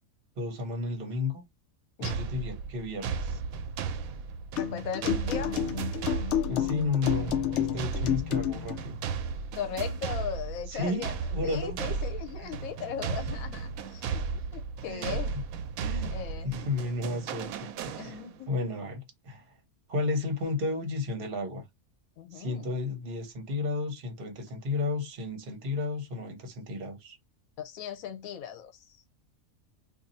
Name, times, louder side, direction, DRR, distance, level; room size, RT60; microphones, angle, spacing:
voice 1, 0.4-1.4 2.0-3.4 6.5-9.0 10.7-11.0 11.3-11.8 12.4-12.6 14.9-15.2 15.8-16.1 16.4-18.2 18.5-19.4 19.9-21.6 22.3-27.2, left 3 dB, 45° right, 0.9 m, -33 dB
sound 1, 2.0-18.5, right 5 dB, 80° right, 1.0 m, -35 dB
voice 2, 4.6-5.6 9.5-11.1 11.4-14.2 14.5-15.3 16.1-16.7 18.0-18.7 22.2-22.8 27.6-28.7, left 8 dB, 85° left, 1.1 m, -38 dB
sound 2, 4.6-8.8, left 10 dB, 65° left, 0.8 m, -30 dB
2.6 x 2.6 x 3.9 m
omnidirectional pair, 1.5 m